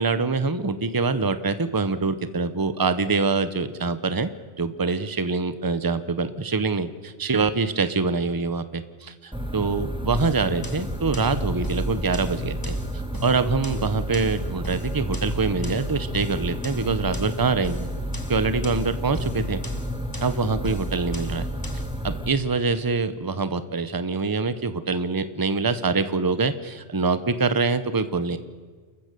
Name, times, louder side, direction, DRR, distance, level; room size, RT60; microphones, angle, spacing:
voice 1, 0.0-4.3 4.6-17.9 18.3-19.6 20.2-21.5 22.0-28.4, right 4 dB, 20° right, 12 dB, 0.9 m, -25 dB
sound 1, 9.3-22.3, equal, 5° right, 1.3 m, -31 dB
sound 2, 10.1-22.0, left 1 dB, 20° left, 1.7 m, -40 dB
29.0 x 14.5 x 6.8 m, 1.5 s
omnidirectional pair, 1.2 m